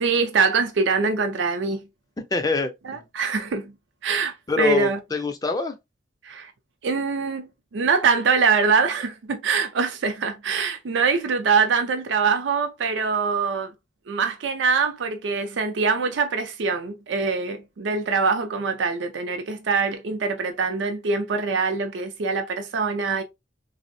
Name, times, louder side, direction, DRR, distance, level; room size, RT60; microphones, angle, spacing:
voice 1, 0.0-1.8 2.8-3.7 4.0-5.0 6.2-6.5 6.8-7.5 7.7-13.7 14.1-23.2, right 5 dB, 80° right, 0.5 m, -23 dB
voice 2, 2.3-3.0 4.5-5.8, left 4 dB, 20° left, 0.4 m, -25 dB
3.4 x 2.0 x 2.5 m
head